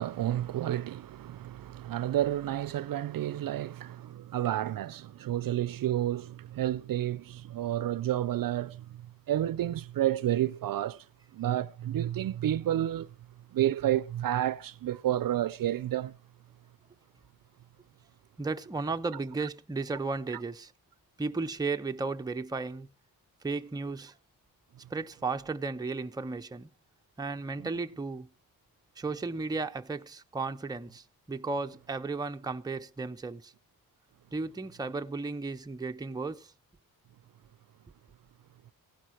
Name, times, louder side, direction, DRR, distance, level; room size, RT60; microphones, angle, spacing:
voice 1, 0.0-9.0 9.3-11.0 11.3-13.1 13.5-16.1 27.6-27.7, right 12 dB, 65° right, 0.6 m, -30 dB
voice 2, 18.4-20.7 21.2-22.9 23.4-24.1 24.9-26.7 27.2-28.3 29.0-33.5 34.3-36.5, right 3 dB, 10° right, 0.6 m, -34 dB
16.0 x 11.5 x 4.5 m
wide cardioid pair, 120°, 37 cm